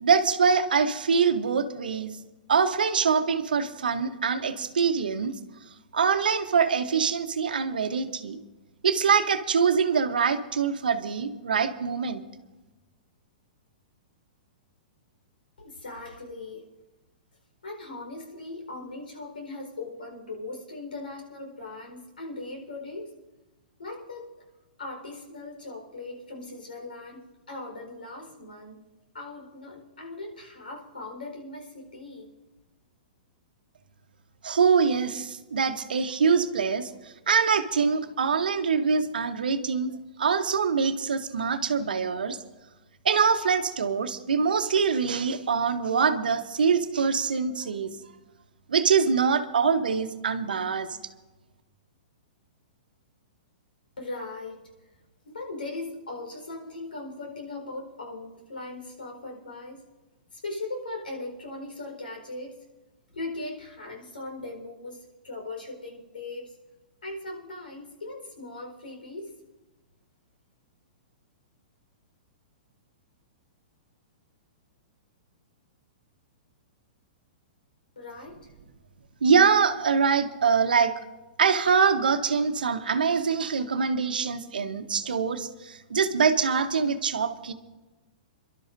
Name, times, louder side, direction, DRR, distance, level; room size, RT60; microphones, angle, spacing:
voice 1, 0.0-2.1 2.5-5.3 5.9-8.4 8.8-12.2 34.4-39.9 40.2-42.4 43.0-47.9 48.7-50.9 79.2-80.9 81.4-87.5, right 6 dB, 80° right, 8 dB, 1.1 m, -24 dB
voice 2, 15.6-16.6 17.6-23.1 23.8-24.3 24.8-28.8 29.1-32.3 54.0-54.6 55.2-59.8 60.3-62.6 63.1-66.6 67.0-69.3 78.0-78.5, left 2 dB, 90° left, 2 dB, 4.6 m, -39 dB
28.5 x 12.0 x 2.7 m, 1.1 s
hypercardioid pair, 125°, 5 cm